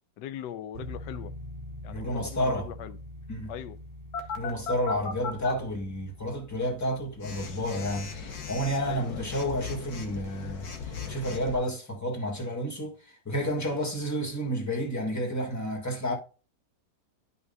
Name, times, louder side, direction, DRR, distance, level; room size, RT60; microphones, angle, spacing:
voice 1, 0.2-1.3 1.8-3.0 3.5-3.8 8.8-9.3, left 10 dB, 85° left, 1.2 m, -40 dB
sound 1, 0.7-11.6, left 1 dB, 35° right, 1.8 m, -46 dB
voice 2, 1.9-2.7 3.3-3.5 4.4-16.1, equal, 10° left, 1.4 m, -31 dB
Telephone, 4.1-5.5 7.2-11.6, left 5 dB, 65° left, 1.6 m, -37 dB
11.0 x 5.5 x 2.7 m
omnidirectional pair, 1.8 m